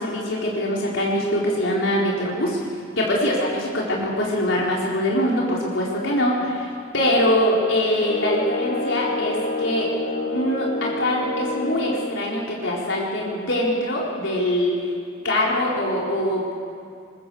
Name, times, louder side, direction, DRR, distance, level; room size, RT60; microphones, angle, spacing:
voice 1, 0.0-2.7 3.0-9.9 10.3-14.9 15.2-16.5, left 1 dB, 80° left, -4 dB, 4.6 m, -23 dB
sound 1, 8.0-12.2, left 1 dB, 50° left, 2.1 m, -28 dB
24.5 x 21.5 x 7.2 m, 2.4 s
head